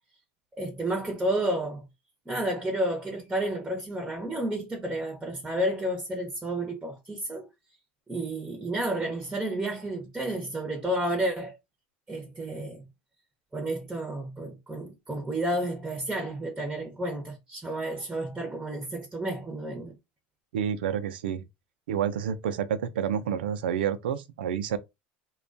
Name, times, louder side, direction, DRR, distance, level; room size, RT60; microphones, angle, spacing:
voice 1, 0.6-1.8 2.3-7.5 8.1-11.6 12.1-12.8 13.5-19.9, right 1 dB, 10° right, 0.7 m, -31 dB
voice 2, 20.5-21.4 21.9-24.8, right 8 dB, 85° right, 0.3 m, -29 dB
2.2 x 2.2 x 2.5 m
hypercardioid pair, 90°, 5 cm